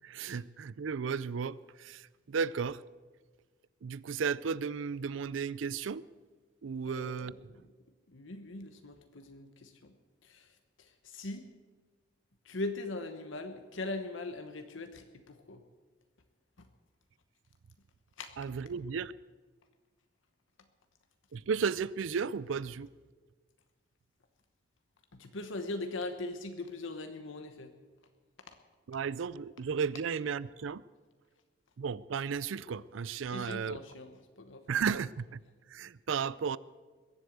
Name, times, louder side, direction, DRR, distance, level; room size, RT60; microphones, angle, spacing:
voice 1, 0.0-2.8 3.8-6.0 6.6-7.3 18.4-19.1 21.3-22.9 28.9-30.8 31.8-33.8 34.7-35.4 35.7-36.6, right 6 dB, 70° right, 0.4 m, -34 dB
voice 2, 6.8-7.6 8.1-9.9 10.2-10.5 10.8-11.5 12.4-15.6 18.2-18.5 25.1-27.7 28.5-28.6 33.3-34.6, left 2 dB, 70° left, 1.0 m, -41 dB
21.5 x 8.1 x 7.9 m
head